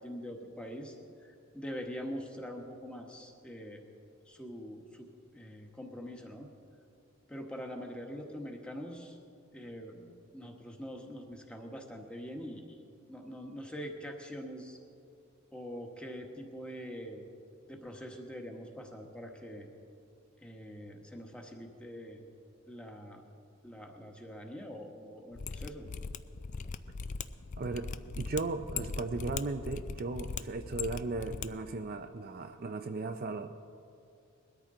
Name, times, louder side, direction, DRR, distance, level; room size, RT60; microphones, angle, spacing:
voice 1, 0.0-3.8 4.3-6.5 7.3-9.2 9.5-12.8 13.1-14.8 15.5-17.2 17.7-19.7 20.4-22.2 22.7-23.2 23.6-25.8, equal, 5° left, 2 dB, 1.2 m, -44 dB
Mechanisms, 25.3-31.5 31.7-31.8, left 5 dB, 35° left, 0.3 m, -39 dB
voice 2, 27.6-27.9 28.2-33.5, right 3 dB, 40° right, 7 dB, 0.4 m, -36 dB
21.0 x 13.0 x 3.8 m, 2.4 s
head